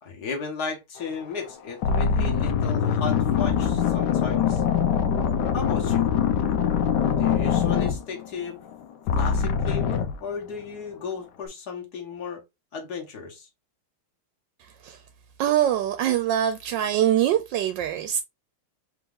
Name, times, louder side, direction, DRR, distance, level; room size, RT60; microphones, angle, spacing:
voice 1, 0.0-4.6 5.5-6.1 7.2-8.6 9.2-12.4 12.7-13.5, left 5 dB, 50° left, 1.7 m, -35 dB
sound 1, 1.2-1.4 1.8-8.7 9.1-10.2, left 7 dB, 75° left, 1.0 m, -23 dB
voice 2, 15.4-18.2, right 11 dB, 75° right, 1.1 m, -23 dB
4.6 x 2.9 x 3.6 m
omnidirectional pair, 2.3 m